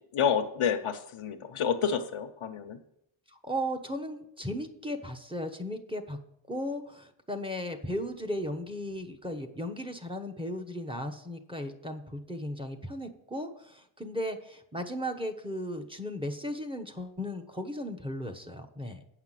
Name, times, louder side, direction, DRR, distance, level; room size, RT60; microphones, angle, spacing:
voice 1, 0.1-2.8, left 7 dB, 90° left, 5 dB, 1.0 m, -29 dB
voice 2, 3.4-6.2 6.5-19.0, equal, 10° right, 4 dB, 1.1 m, -36 dB
8.8 x 5.9 x 7.5 m, 0.76 s
wide cardioid pair, 85°, 49 cm